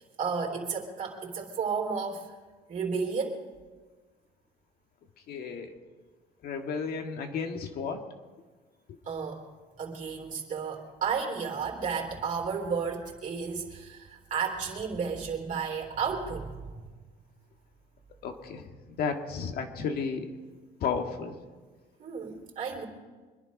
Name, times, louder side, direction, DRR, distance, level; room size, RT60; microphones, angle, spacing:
voice 1, 0.2-2.3 2.7-3.4 9.1-9.5 9.8-16.8 22.0-22.8, right 5 dB, 50° right, -1 dB, 3.4 m, -32 dB
voice 2, 5.3-5.8 6.4-8.0 18.2-20.3 20.8-21.4, left 5 dB, 65° left, 5 dB, 1.8 m, -33 dB
25.0 x 10.5 x 5.3 m, 1.4 s
cardioid pair, 110°, 17 cm